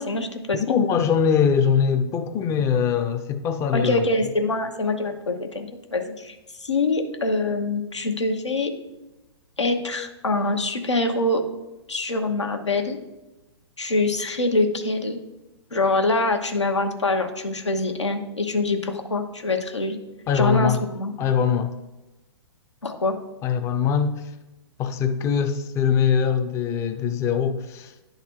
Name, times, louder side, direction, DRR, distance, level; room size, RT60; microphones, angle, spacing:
voice 1, 0.0-0.8 3.7-8.7 9.6-11.4 11.9-13.0 13.8-15.2 15.7-20.0 20.3-21.1 22.8-23.2, left 2 dB, 85° left, 1.0 m, -24 dB
voice 2, 0.5-4.1 20.3-20.8 21.2-21.7 23.4-24.3 24.8-28.0, left 7 dB, 20° left, 0.5 m, -22 dB
10.0 x 3.9 x 4.5 m
figure-of-eight pair, 120°, 15 cm